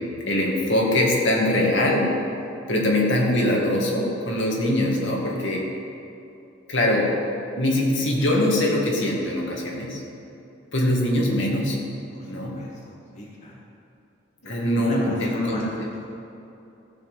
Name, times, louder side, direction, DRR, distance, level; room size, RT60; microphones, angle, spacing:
voice 1, 0.0-2.1 2.7-5.7 6.7-7.1 7.6-10.0 10.7-11.8 12.3-12.6 14.4-15.6, left 1 dB, 75° left, -2 dB, 2.2 m, -22 dB
voice 2, 12.5-13.6 14.7-16.0, left 1 dB, 35° left, -4 dB, 1.5 m, -31 dB
15.5 x 5.3 x 7.5 m, 2.8 s
head